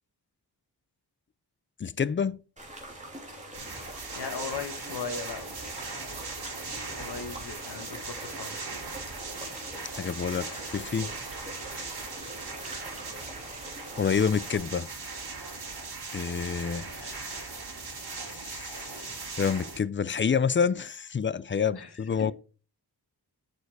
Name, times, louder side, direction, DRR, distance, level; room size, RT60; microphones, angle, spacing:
voice 1, 1.8-2.4 9.9-11.1 14.0-14.9 16.1-17.4 18.3-22.3, left 6 dB, 30° left, 0.4 m, -28 dB
sound 1, 2.6-14.6, right 1 dB, 15° right, 3.0 m, -44 dB
sound 2, 3.5-19.8, right 4 dB, 70° right, 3.8 m, -39 dB
voice 2, 3.9-5.5 7.0-8.6 21.7-21.9 22.2-22.3, left 5 dB, 70° left, 1.4 m, -38 dB
7.0 x 6.9 x 4.6 m
wide cardioid pair, 110°, 41 cm